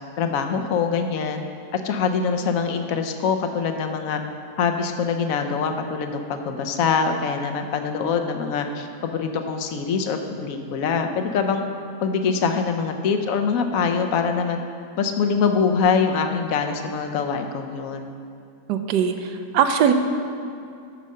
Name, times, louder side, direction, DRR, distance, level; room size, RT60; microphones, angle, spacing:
voice 1, 0.2-1.4 1.7-4.2 4.6-11.6 12.0-14.6 15.0-18.1, left 5 dB, 65° left, 6 dB, 1.0 m, -24 dB
voice 2, 18.7-19.9, right 8 dB, 85° right, 7 dB, 1.2 m, -21 dB
8.3 x 6.4 x 5.4 m, 2.4 s
omnidirectional pair, 1.8 m